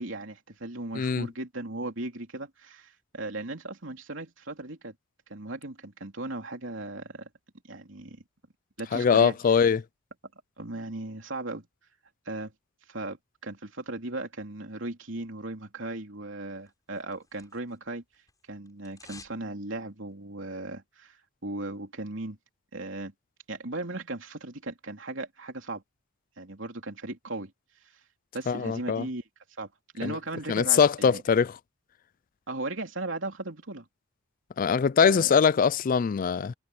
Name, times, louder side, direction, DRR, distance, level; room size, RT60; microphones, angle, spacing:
voice 1, 0.0-4.9 5.3-7.3 7.7-8.2 8.8-9.6 10.6-11.7 12.3-12.5 12.9-13.2 13.4-18.0 18.5-21.2 21.4-22.4 22.7-23.1 23.5-25.8 26.4-27.5 28.3-29.2 29.6-31.2 32.5-33.9 35.0-35.3, right 2 dB, 70° right, 3.4 m, -37 dB
voice 2, 1.0-1.3 8.9-9.8 28.5-29.1 30.0-30.2 30.5-31.5 34.6-36.5, left 6 dB, 40° left, 0.3 m, -22 dB
sound 1, 16.7-17.9 18.1-19.4 19.7-19.8, left 4 dB, 20° left, 7.7 m, -52 dB
head